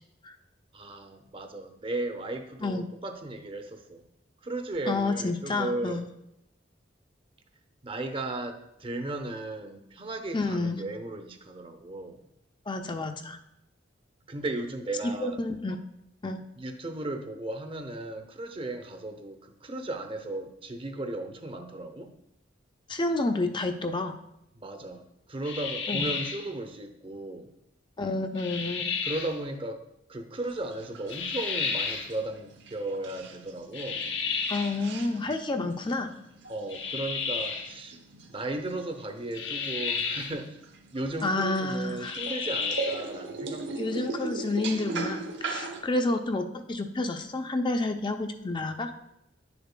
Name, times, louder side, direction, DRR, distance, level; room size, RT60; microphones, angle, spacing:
voice 1, 0.7-4.0 4.4-6.1 7.8-12.2 14.3-15.4 16.6-22.1 24.5-27.5 29.0-34.1 36.5-38.0 38.3-40.6 40.9-44.0, right 2 dB, 30° right, 7 dB, 0.7 m, -36 dB
voice 2, 4.9-6.1 10.3-10.8 12.7-13.4 15.2-15.8 16.2-16.4 22.9-24.2 25.9-26.1 28.0-28.9 34.5-36.1 41.2-42.2 43.8-48.9, left 2 dB, 25° left, 7 dB, 0.5 m, -29 dB
sound 1, 25.4-26.5 28.4-29.4 31.1-32.1 33.7-34.8 36.7-37.7 39.3-40.4 42.0-43.1, left 5 dB, 90° left, 0.8 m, -32 dB
sound 2, 30.3-45.8, right 3 dB, 70° right, 0.8 m, -40 dB
10.5 x 6.9 x 2.2 m, 0.82 s
head